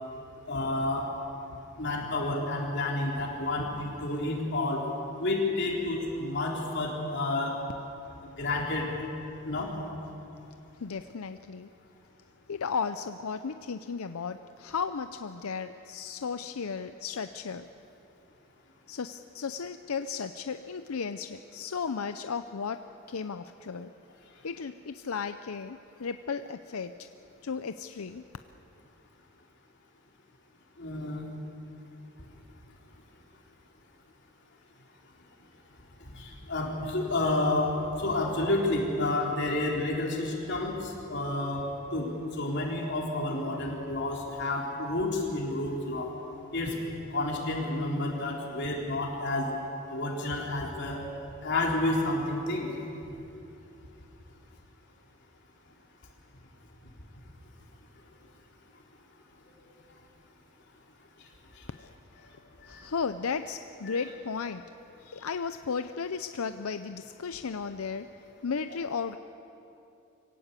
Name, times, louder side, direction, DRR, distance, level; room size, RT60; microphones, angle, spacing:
voice 1, 0.5-1.1 1.8-4.8 5.2-7.5 8.4-8.9 9.5-9.7 30.8-31.2 36.2-37.7 38.0-40.7 41.1-41.6 41.9-42.1 42.4-46.1 46.5-46.7 47.1-49.5 49.9-51.0 51.4-52.7 63.9-64.0, left 2 dB, 55° left, -2 dB, 4.0 m, -30 dB
voice 2, 10.8-11.7 12.5-17.7 18.9-23.9 24.4-27.1 27.4-28.2 61.8-61.9 62.2-62.3 62.7-64.6 65.0-68.1 68.4-69.2, left 5 dB, 90° left, 10 dB, 0.6 m, -35 dB
24.5 x 17.0 x 8.3 m, 2.8 s
head